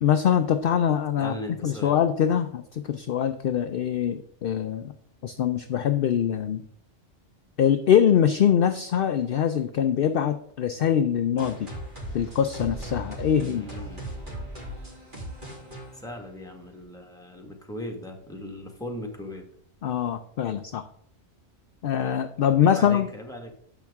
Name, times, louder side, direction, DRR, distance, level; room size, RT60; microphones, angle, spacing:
voice 1, 0.0-1.3 1.6-4.9 5.2-6.6 7.6-11.7 12.1-13.6 19.8-20.8 21.8-23.1, left 9 dB, 60° left, 9 dB, 0.7 m, -23 dB
voice 2, 1.2-2.0 13.3-14.1 15.9-19.5 22.6-23.5, left 1 dB, 5° left, 2 dB, 1.5 m, -38 dB
sound 1, 11.4-16.8, right 1 dB, 40° right, 3.3 m, -38 dB
10.5 x 7.2 x 3.6 m, 0.64 s
omnidirectional pair, 1.2 m